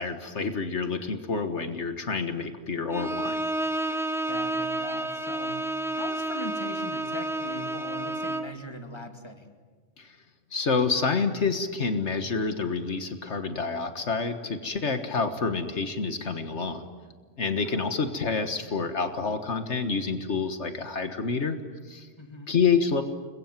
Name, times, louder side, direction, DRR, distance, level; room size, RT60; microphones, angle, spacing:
voice 1, 0.0-3.4 10.0-10.1 10.5-16.9 17.4-21.6 21.9-22.1 22.5-23.0, left 5 dB, 75° left, 8 dB, 1.8 m, -28 dB
Bowed string instrument, 2.9-8.6, right 2 dB, ahead, 1.0 m, -30 dB
voice 2, 4.3-9.5 14.8-15.2 17.6-18.0 22.2-22.5, left 1 dB, 25° left, 5 dB, 2.4 m, -41 dB
29.5 x 22.5 x 9.1 m, 1.4 s
omnidirectional pair, 1.2 m